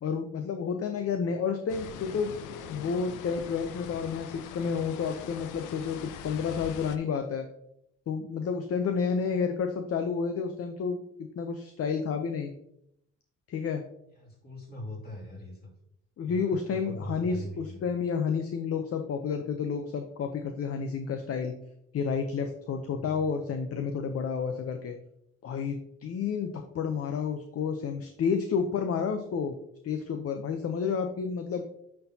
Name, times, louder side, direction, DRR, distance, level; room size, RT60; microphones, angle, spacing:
voice 1, 0.0-2.3 2.7-7.5 8.1-12.5 13.5-13.8 16.2-21.5 21.9-24.9 25.4-29.6 29.8-31.6, left 6 dB, 50° left, 6 dB, 0.7 m, -30 dB
sound 1, 1.7-7.0, left 8 dB, 85° left, 0.6 m, -42 dB
voice 2, 14.2-15.7 16.2-17.8 22.9-23.3, left 1 dB, 30° left, -3 dB, 2.6 m, -41 dB
9.4 x 4.4 x 2.8 m, 0.77 s
cardioid pair, 90°, 30 cm